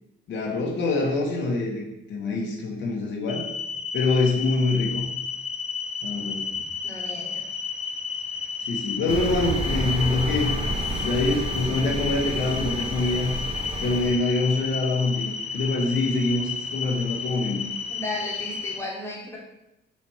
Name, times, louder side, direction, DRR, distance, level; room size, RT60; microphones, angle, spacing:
voice 1, 0.3-1.8 2.1-3.4 3.9-5.0 6.0-6.4 8.7-10.5 11.0-13.3 13.8-17.6, left 3 dB, 65° left, -2 dB, 0.9 m, -25 dB
sound 1, 3.3-18.8, left 6 dB, 35° left, 0.4 m, -32 dB
voice 2, 6.8-7.5 17.9-19.4, left 2 dB, 15° left, -3 dB, 1.2 m, -34 dB
sound 2, 9.1-14.1, right 2 dB, 30° right, 0.6 m, -30 dB
4.2 x 2.5 x 4.5 m, 0.90 s
cardioid pair, 90°, 20 cm